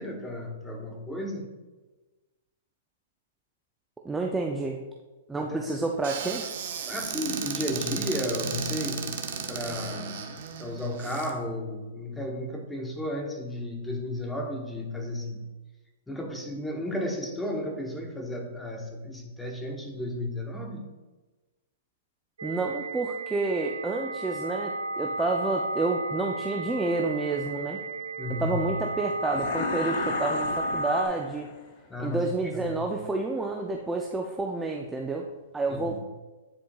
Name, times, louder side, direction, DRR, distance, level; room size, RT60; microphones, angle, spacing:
voice 1, 0.0-1.5 5.4-5.8 6.9-9.2 9.5-15.4 16.1-20.9 28.2-28.6 31.9-32.8 35.7-36.0, left 1 dB, 5° left, 2 dB, 0.9 m, -33 dB
voice 2, 4.0-4.8 5.3-6.5 22.4-27.8 28.4-31.5 32.0-35.3 35.5-36.0, right 3 dB, 10° right, 1 dB, 0.4 m, -29 dB
Squeak / Cupboard open or close, 6.0-11.3, right 7 dB, 60° right, 0.8 m, -34 dB
sound 1, 22.4-31.1, right 2 dB, 90° right, 0.5 m, -33 dB
sound 2, 29.3-31.6, left 8 dB, 50° left, 0.5 m, -35 dB
9.9 x 4.4 x 2.3 m, 1.2 s
hypercardioid pair, 140°, 0 cm